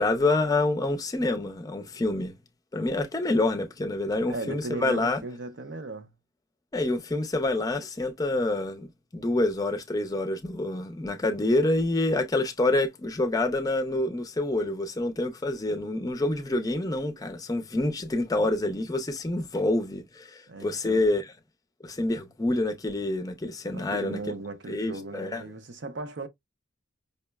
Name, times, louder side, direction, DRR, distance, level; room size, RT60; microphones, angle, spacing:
voice 1, 0.0-2.3 2.7-5.2 6.7-21.3 21.8-24.2 24.7-25.4, left 2 dB, 20° left, 0.5 m, -27 dB
voice 2, 4.3-6.1 20.5-21.1 23.7-26.3, right 3 dB, 65° right, 0.6 m, -37 dB
5.3 x 2.0 x 2.2 m
head